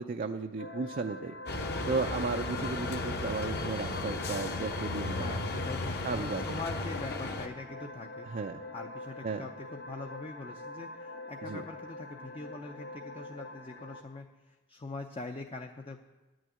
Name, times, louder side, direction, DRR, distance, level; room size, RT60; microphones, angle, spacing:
voice 1, 0.0-1.3 1.9-5.5 6.0-6.4 8.2-8.6 9.2-9.4 11.4-11.6, right 4 dB, 40° right, 5 dB, 0.4 m, -34 dB
sound 1, 0.6-14.0, left 2 dB, 90° left, 1.6 m, -45 dB
sound 2, 1.5-7.5, left 2 dB, 50° left, 1.1 m, -35 dB
voice 2, 5.2-8.3 8.7-16.0, left 3 dB, 25° left, 3 dB, 0.5 m, -43 dB
11.0 x 6.3 x 9.0 m, 1.1 s
head